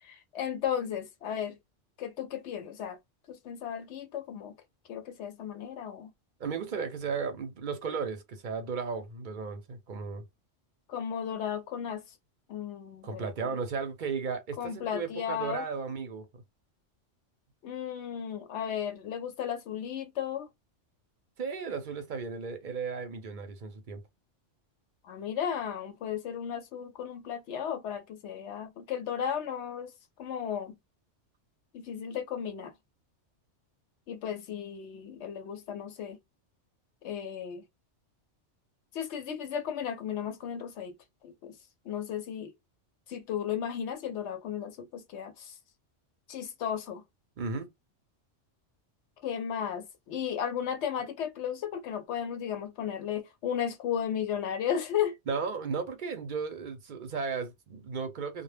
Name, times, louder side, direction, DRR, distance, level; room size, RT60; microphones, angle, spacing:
voice 1, 0.0-1.6 2.0-3.0 3.3-4.5 4.9-6.1 10.9-12.0 12.5-13.3 14.6-15.6 17.6-20.5 25.0-29.9 30.2-30.7 31.7-32.7 34.1-36.2 37.0-37.6 38.9-40.9 41.2-41.5 41.9-42.5 43.1-45.6 46.3-47.0 49.2-55.2, left 8 dB, 75° left, 0.9 m, -34 dB
voice 2, 6.4-10.2 13.0-16.3 21.4-24.0 47.4-47.7 55.3-58.4, right 5 dB, 50° right, 0.7 m, -35 dB
2.1 x 2.1 x 3.2 m
omnidirectional pair, 1.2 m